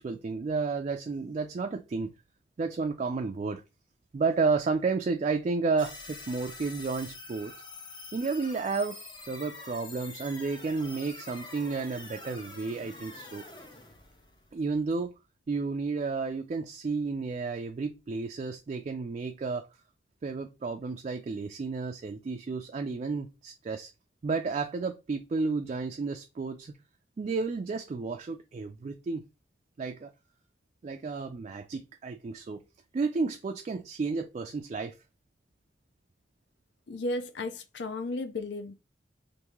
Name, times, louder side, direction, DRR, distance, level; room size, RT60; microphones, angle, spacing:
voice 1, 0.0-2.1 2.6-3.6 4.1-7.5 8.1-9.0 9.3-13.4 14.5-15.1 15.5-19.7 20.2-23.9 24.2-26.8 27.2-29.2 29.8-30.1 30.8-32.6 32.9-35.0, right 4 dB, 40° right, 0.3 m, -32 dB
sound 1, 5.8-15.0, left 3 dB, 25° left, 0.6 m, -46 dB
voice 2, 36.9-38.8, left 2 dB, 70° left, 0.5 m, -34 dB
3.4 x 2.6 x 3.0 m
head